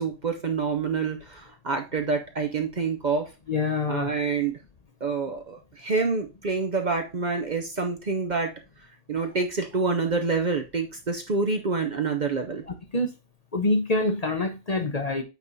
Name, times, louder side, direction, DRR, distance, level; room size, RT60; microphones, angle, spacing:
voice 1, 0.0-3.3 3.9-4.6 5.0-8.5 9.1-12.6, right 4 dB, 45° right, 6 dB, 0.7 m, -27 dB
voice 2, 3.5-4.1 12.7-13.1 13.5-15.2, left 2 dB, 40° left, 5 dB, 0.8 m, -26 dB
8.2 x 3.6 x 4.0 m, 0.27 s
omnidirectional pair, 1.2 m